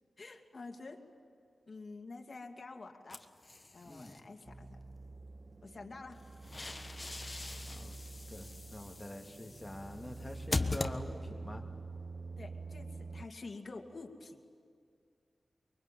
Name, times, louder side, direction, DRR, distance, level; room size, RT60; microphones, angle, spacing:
voice 1, 0.2-1.0 1.7-3.2 3.7-4.8 5.6-6.2 12.4-14.4, left 3 dB, 50° left, 2 dB, 2.4 m, -48 dB
sound 1, 3.1-4.2 6.1-11.5, left 2 dB, 30° left, 1.3 m, -41 dB
voice 2, 3.9-4.2 7.7-7.9 8.3-11.6, left 1 dB, 15° left, 2 dB, 2.8 m, -45 dB
sound 2, 4.5-13.3, right 3 dB, 40° right, 0.8 m, -47 dB
23.5 x 23.0 x 9.2 m, 2.2 s
cardioid pair, 60°, 0 cm